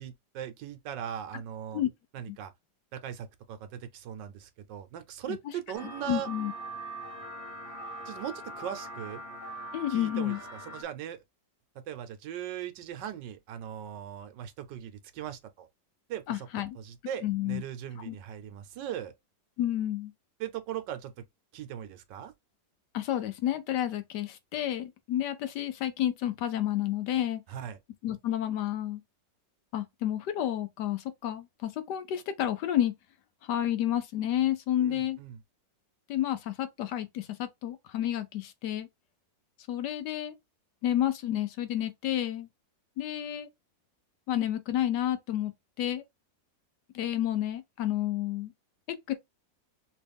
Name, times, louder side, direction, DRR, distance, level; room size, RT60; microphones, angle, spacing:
voice 1, 0.0-1.8 2.1-2.5 2.9-6.3 8.0-9.2 9.9-11.2 11.7-15.7 16.1-16.5 16.7-19.1 20.4-21.1 21.5-22.3 27.5-27.8 34.8-35.4, right 10 dB, 75° right, 1.3 m, -39 dB
sound 1, 5.7-10.8, right 1 dB, 45° left, 1.5 m, -42 dB
voice 2, 6.1-6.5 9.7-10.4 16.3-16.8 17.2-17.6 18.0-18.2 19.6-20.1 22.9-27.4 28.0-29.0 29.7-32.9 33.4-35.2 36.1-38.9 39.7-40.3 40.8-42.5 43.0-43.5 44.3-45.5 45.8-46.0 46.9-48.5 48.9-49.1, left 12 dB, 75° left, 1.1 m, -30 dB
3.1 x 3.0 x 3.3 m
omnidirectional pair, 2.0 m